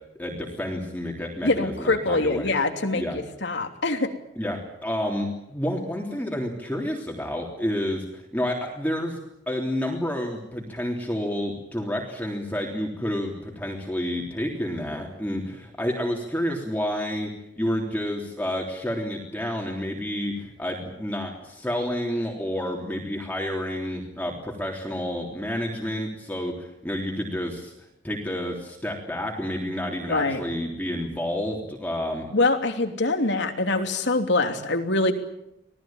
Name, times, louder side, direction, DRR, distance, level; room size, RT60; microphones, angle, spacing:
voice 1, 0.2-2.5 2.9-3.2 4.4-9.2 9.5-17.3 17.6-27.7 28.0-32.3, equal, 10° left, 0 dB, 3.5 m, -29 dB
voice 2, 1.4-4.1 30.1-30.4 32.3-35.1, left 2 dB, 65° left, 6 dB, 3.0 m, -24 dB
26.0 x 18.5 x 9.0 m, 0.82 s
head